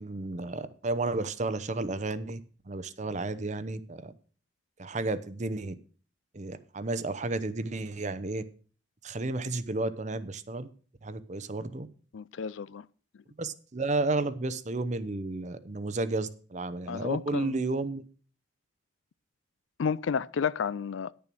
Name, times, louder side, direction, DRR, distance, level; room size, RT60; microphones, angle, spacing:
voice 1, 0.0-2.4 2.7-4.1 4.8-5.7 6.3-8.4 9.0-10.7 11.0-11.9 13.4-18.0, right 2 dB, 40° right, 0.7 m, -32 dB
voice 2, 12.1-12.9 16.9-17.6 19.8-21.1, left 6 dB, 80° left, 0.4 m, -31 dB
10.5 x 6.9 x 6.1 m
head